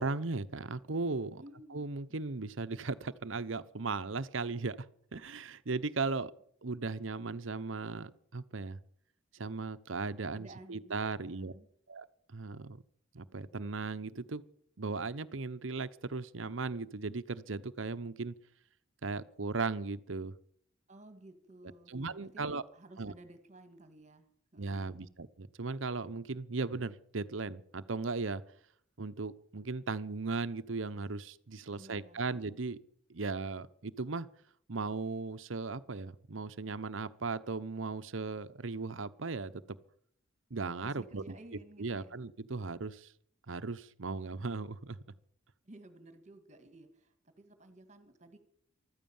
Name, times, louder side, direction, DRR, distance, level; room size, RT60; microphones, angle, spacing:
voice 1, 0.0-1.4 1.7-4.9 5.1-6.3 6.6-8.8 9.3-11.5 11.9-12.1 12.3-12.8 13.1-14.4 14.8-18.3 19.0-20.3 21.9-22.6 23.0-23.1 24.6-25.1 25.4-28.4 29.0-32.8 33.1-34.3 34.7-39.6 40.5-41.2 41.8-43.1 43.5-45.0, right 3 dB, 75° right, 14 dB, 0.9 m, -37 dB
voice 2, 1.4-1.9 10.3-10.9 11.2-11.7 20.9-21.9 22.2-25.0 31.7-32.3 40.8-42.2 45.6-48.4, right 1 dB, 35° right, 9 dB, 2.1 m, -55 dB
15.0 x 13.5 x 7.2 m, 0.63 s
head